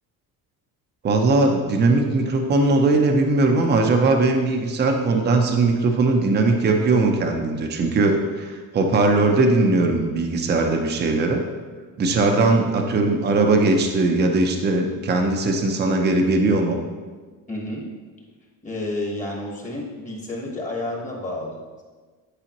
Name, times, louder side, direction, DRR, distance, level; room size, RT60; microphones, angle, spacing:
voice 1, 1.0-11.4 12.0-16.8, right 3 dB, 25° right, 3 dB, 0.7 m, -19 dB
voice 2, 17.5-17.9 18.6-21.8, left 1 dB, 20° left, -2 dB, 1.2 m, -30 dB
9.8 x 4.8 x 3.0 m, 1.4 s
cardioid pair, 135°, 38 cm